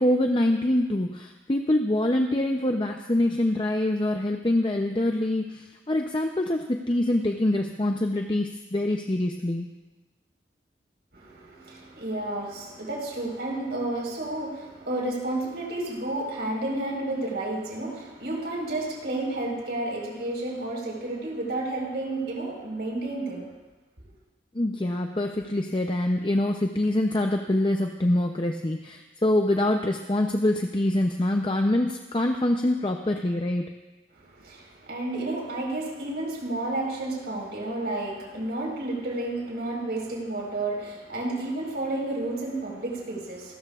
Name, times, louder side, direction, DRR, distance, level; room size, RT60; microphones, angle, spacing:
voice 1, 0.0-9.7 24.5-33.7, left 1 dB, 30° left, 3 dB, 0.6 m, -25 dB
voice 2, 11.1-23.5 34.1-43.6, right 2 dB, 70° right, -1 dB, 4.5 m, -31 dB
28.5 x 13.5 x 2.4 m, 1.1 s
head